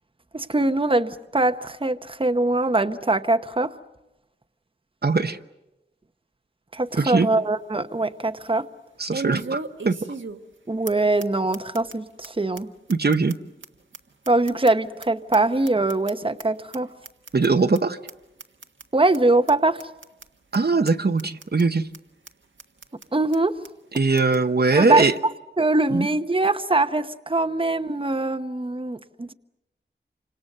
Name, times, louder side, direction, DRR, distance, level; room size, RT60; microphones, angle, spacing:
voice 1, 0.3-3.7 6.7-8.6 10.7-12.7 14.3-16.9 18.9-19.8 23.1-23.5 24.8-25.1 25.6-29.3, right 2 dB, 25° right, 8 dB, 1.0 m, -22 dB
voice 2, 5.0-5.4 7.0-7.3 9.0-9.6 9.8-9.9 12.9-13.4 17.3-18.0 20.5-21.8 23.9-25.1 25.9-26.1, right 3 dB, 55° right, 7 dB, 1.0 m, -20 dB
sound 1, 6.7-6.8 7.3-7.4 9.1-10.6 10.9-11.0 11.2-11.3 11.5-11.9 12.2-12.3 12.6-12.7 12.9-15.1 15.3-16.4 16.7-16.8 17.0-17.5 17.7-17.8 18.1-18.2 18.4-18.8 19.1-19.2 19.5-19.6 19.8-20.3 20.5-20.6 20.9-21.0 21.2-21.6 21.9-22.0 22.3-22.4 22.6-23.1 23.3-23.4 23.6-23.7 23.9-24.4, right 4 dB, 80° right, 1.5 m, -36 dB
29.0 x 26.5 x 6.7 m, 0.95 s
wide cardioid pair, 65°, 19 cm